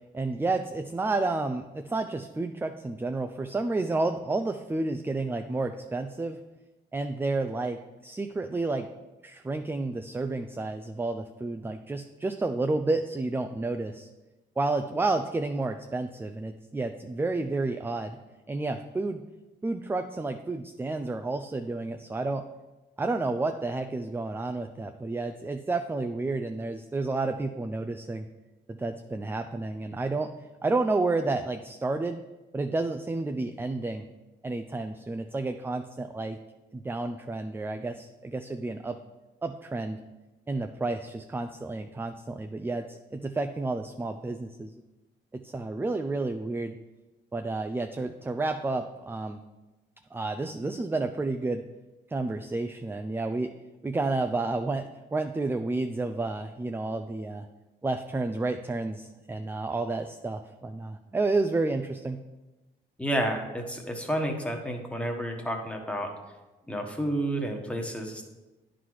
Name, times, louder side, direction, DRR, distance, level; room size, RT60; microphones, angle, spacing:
voice 1, 0.1-6.4 6.9-8.9 9.2-14.1 14.6-18.2 18.5-19.2 19.6-22.4 23.0-28.3 28.7-30.3 30.6-32.2 32.5-34.0 34.4-36.4 36.7-39.0 39.4-40.0 40.5-44.8 45.3-46.7 47.3-49.4 50.1-51.6 52.1-53.5 53.8-57.5 57.8-62.2, right 3 dB, 10° right, 7 dB, 0.3 m, -30 dB
voice 2, 63.0-66.1 66.7-68.2, right 1 dB, 5° left, 2 dB, 1.2 m, -30 dB
9.8 x 4.0 x 4.7 m, 1.1 s
cardioid pair, 90°, 20 cm